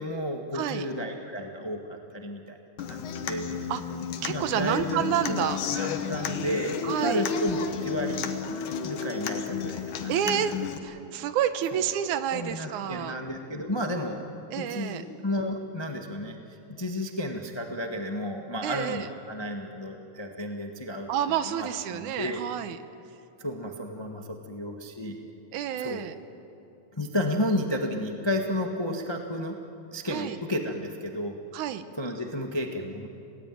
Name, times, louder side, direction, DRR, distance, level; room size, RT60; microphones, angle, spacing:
voice 1, 0.0-3.5 4.3-8.3 8.7-10.1 11.7-11.9 12.3-14.2 14.5-16.4 16.8-21.1 21.5-22.4 23.4-25.2 25.8-26.0 27.0-29.6 29.9-31.4 32.0-33.1, equal, 25° left, 3 dB, 0.5 m, -32 dB
voice 2, 0.5-0.9 3.7-3.8 4.2-5.6 6.8-7.2 10.1-10.5 10.8-13.1 14.5-15.0 18.6-19.1 21.1-22.8 25.5-26.1 30.1-30.4 31.5-31.8, right 10 dB, 80° right, 11 dB, 2.3 m, -29 dB
Human voice / Acoustic guitar, 2.8-10.8, left 7 dB, 80° left, 2.7 m, -32 dB
28.0 x 18.5 x 9.2 m, 2.8 s
omnidirectional pair, 3.5 m